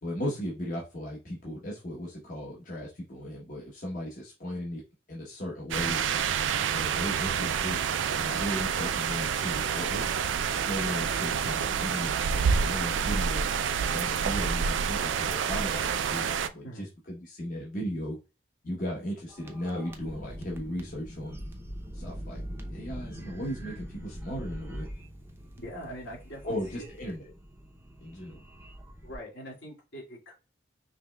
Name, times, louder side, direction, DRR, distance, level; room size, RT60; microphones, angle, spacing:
voice 1, 0.0-4.8 5.1-6.0 6.7-7.8 8.1-10.1 10.5-13.5 13.8-18.2 18.6-21.4 21.9-22.4 22.7-24.9 26.4-27.3 28.0-28.4, equal, 45° left, -3 dB, 1.0 m, -36 dB
sound 1, 5.7-16.5, right 7 dB, 85° right, 0.4 m, -28 dB
sound 2, 19.3-29.2, equal, 10° right, 0.6 m, -43 dB
voice 2, 25.6-26.9 29.0-30.3, equal, 75° left, -3 dB, 2.3 m, -43 dB
5.2 x 3.2 x 2.2 m, 0.30 s
head